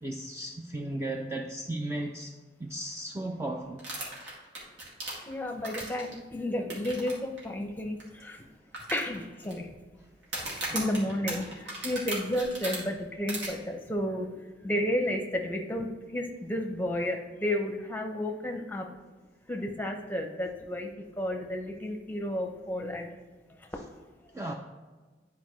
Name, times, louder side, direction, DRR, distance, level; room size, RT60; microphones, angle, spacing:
voice 1, 0.0-3.8 10.0-10.1 24.3-24.5, right 1 dB, 15° right, 2 dB, 0.3 m, -35 dB
sound 1, 3.8-6.1 6.7-7.1 7.4-7.5 8.0-8.1 8.7-9.5 10.2-12.8 13.3-13.5, right 2 dB, 85° right, 2.2 m, -36 dB
voice 2, 5.3-8.4 8.9-9.7 10.7-18.9 19.5-23.1 23.5-23.7, left 1 dB, 10° left, 2 dB, 0.7 m, -32 dB
10.5 x 4.7 x 3.1 m, 1.3 s
head